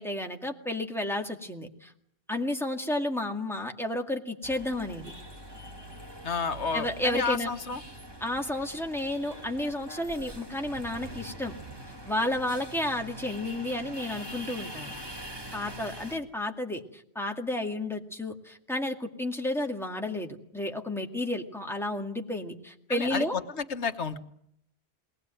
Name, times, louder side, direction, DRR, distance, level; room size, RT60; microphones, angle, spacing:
voice 1, 0.0-1.9 2.3-5.1 6.7-7.5 8.2-11.5 12.1-14.9 15.5-23.4, left 1 dB, ahead, 3 dB, 2.1 m, -32 dB
sound 1, 4.4-16.2, right 1 dB, 20° right, 3.0 m, -43 dB
voice 2, 6.2-7.8 22.9-23.4 23.7-24.2, left 5 dB, 90° left, 8 dB, 1.5 m, -31 dB
22.5 x 18.5 x 9.0 m, 0.73 s
omnidirectional pair, 1.1 m